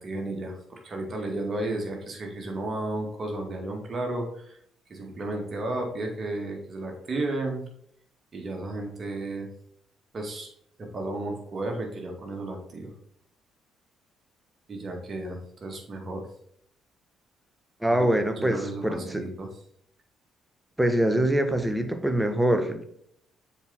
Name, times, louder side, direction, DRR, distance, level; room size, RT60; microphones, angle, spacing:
voice 1, 0.0-4.6 4.9-7.6 8.3-9.5 10.1-10.5 10.8-12.9 14.7-16.3 17.9-18.0 18.4-19.5, right 2 dB, 40° right, 1 dB, 2.0 m, -33 dB
voice 2, 17.8-19.2 20.8-22.8, right 1 dB, 5° right, 7 dB, 1.1 m, -24 dB
7.0 x 4.5 x 4.1 m, 0.68 s
figure-of-eight pair, 45°, 0 cm